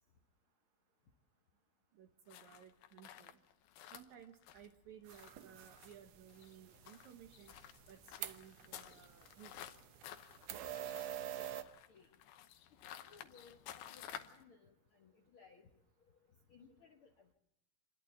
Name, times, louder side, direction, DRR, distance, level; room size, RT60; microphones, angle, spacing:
voice 1, 1.9-3.4 3.9-7.5 7.9-9.7, right 9 dB, 70° right, 7 dB, 2.0 m, -58 dB
sound 1, 2.3-14.4, left 11 dB, 85° left, 2.7 m, -54 dB
sound 2, 5.1-11.6, right 12 dB, 85° right, 1.4 m, -48 dB
voice 2, 8.9-9.3 11.3-12.1 12.9-15.7 16.5-17.3, left 5 dB, 60° left, 1 dB, 1.4 m, -63 dB
28.0 x 11.5 x 8.3 m, 0.84 s
omnidirectional pair, 4.2 m